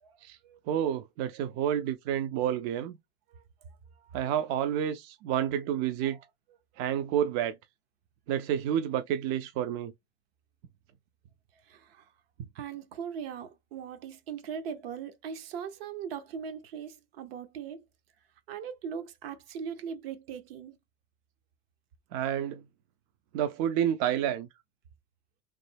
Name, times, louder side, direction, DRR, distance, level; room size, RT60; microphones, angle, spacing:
voice 1, 0.7-3.0 4.1-6.2 6.8-7.6 8.3-9.9 22.1-22.6 23.3-24.5, right 10 dB, 55° right, 0.5 m, -29 dB
voice 2, 3.3-4.2 5.3-5.4 6.0-6.2 6.7-6.9 11.5-12.1 12.5-17.8 18.5-20.8, right 7 dB, 70° right, 0.8 m, -40 dB
3.2 x 2.1 x 3.2 m
hypercardioid pair, 90°, 30 cm